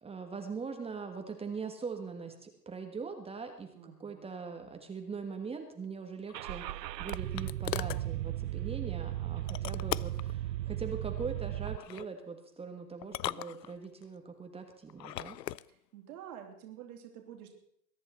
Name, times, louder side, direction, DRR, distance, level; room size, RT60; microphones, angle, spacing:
voice 1, 0.0-15.4, right 5 dB, 10° right, 5 dB, 1.4 m, -41 dB
voice 2, 3.7-4.3 15.7-17.5, right 9 dB, 60° right, 2 dB, 3.2 m, -49 dB
sound 1, 6.3-8.1 9.5-10.3 11.7-12.1 13.0-14.1 14.9-15.7, left 13 dB, 80° left, 0.6 m, -39 dB
Car / Engine starting, 6.3-11.8, right 14 dB, 75° right, 0.5 m, -36 dB
22.5 x 10.5 x 4.2 m, 0.69 s
hypercardioid pair, 110°, 50 cm